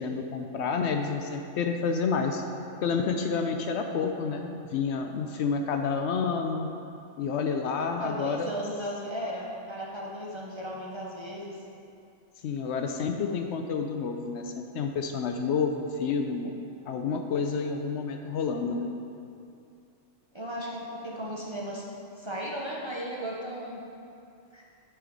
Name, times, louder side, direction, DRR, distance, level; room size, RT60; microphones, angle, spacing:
voice 1, 0.0-2.4 2.8-6.7 7.2-8.5 12.4-16.5 16.9-19.0, left 5 dB, 70° left, 4 dB, 0.8 m, -29 dB
voice 2, 8.0-11.6 20.3-21.8 22.2-23.8 24.5-24.6, equal, 30° right, -4 dB, 0.7 m, -36 dB
8.4 x 4.5 x 5.1 m, 2.6 s
omnidirectional pair, 1.3 m